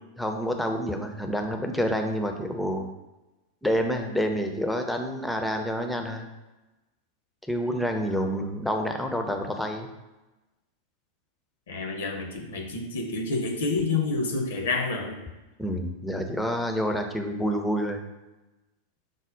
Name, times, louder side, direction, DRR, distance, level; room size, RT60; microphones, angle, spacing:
voice 1, 0.2-2.9 3.6-6.3 7.5-9.9 15.6-18.0, equal, 5° left, 4 dB, 0.4 m, -28 dB
voice 2, 11.7-15.2, left 3 dB, 60° left, 2 dB, 0.6 m, -28 dB
5.0 x 2.0 x 3.6 m, 1.1 s
figure-of-eight pair, 90°, 0 cm